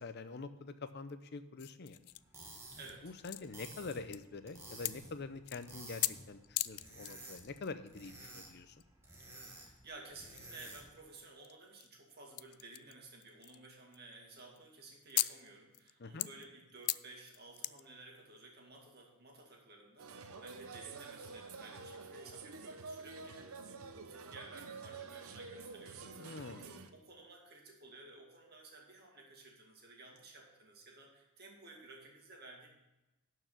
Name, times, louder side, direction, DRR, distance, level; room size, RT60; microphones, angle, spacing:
voice 1, 0.0-2.0 3.0-8.8 16.0-16.3 26.2-26.7, left 3 dB, 50° left, 11 dB, 0.6 m, -45 dB
sound 1, 1.6-3.0 3.2-4.3 4.6-4.9 5.5-5.7 6.0-6.1 6.4-7.7 8.0-8.1 8.8-8.9 9.2-9.8 10.3-10.5 11.4-12.9 13.2-14.1 14.4-14.6 15.1-15.5 15.7-15.9 16.2-17.9 18.4-18.5, left 19 dB, 90° left, 0.3 m, -38 dB
whisk handle - plastic fork, 2.1-11.0, right 2 dB, 10° right, 1.3 m, -53 dB
voice 2, 2.7-3.1 9.4-32.7, right 3 dB, 45° right, 0 dB, 2.1 m, -55 dB
sound 2, 20.0-26.9, right 4 dB, 75° right, 0.8 m, -49 dB
12.0 x 4.8 x 6.7 m, 0.99 s
head